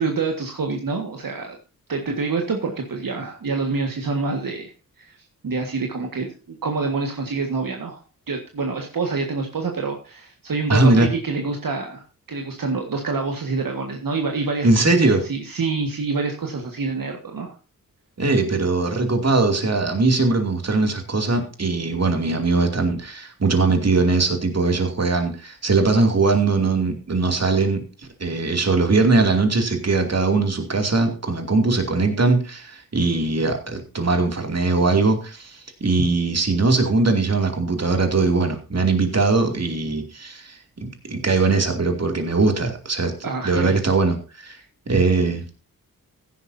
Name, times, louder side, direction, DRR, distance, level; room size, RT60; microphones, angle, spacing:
voice 1, 0.0-1.6 1.9-4.7 5.0-5.2 5.4-8.0 8.3-12.0 12.3-17.5 28.3-28.4 43.2-43.8, right 4 dB, 70° right, 2 dB, 1.8 m, -27 dB
voice 2, 10.7-11.1 14.6-15.2 18.2-27.8 28.2-43.1 43.4-44.6 44.9-45.4, right 3 dB, 45° right, 4 dB, 2.7 m, -20 dB
15.0 x 11.0 x 2.8 m, 0.33 s
cardioid pair, 70°, 35 cm